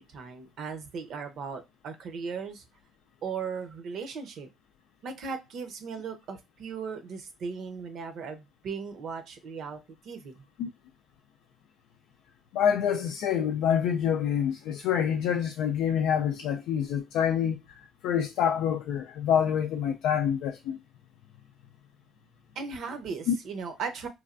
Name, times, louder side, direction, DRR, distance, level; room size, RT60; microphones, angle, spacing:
voice 1, 0.0-2.6 3.2-4.5 5.0-10.4 22.5-24.1, right 5 dB, 65° right, 0.7 m, -37 dB
voice 2, 12.5-17.8 18.0-20.8 23.3-23.4, left 8 dB, 75° left, 0.3 m, -26 dB
3.2 x 2.3 x 2.5 m
supercardioid pair, 65°, 0 cm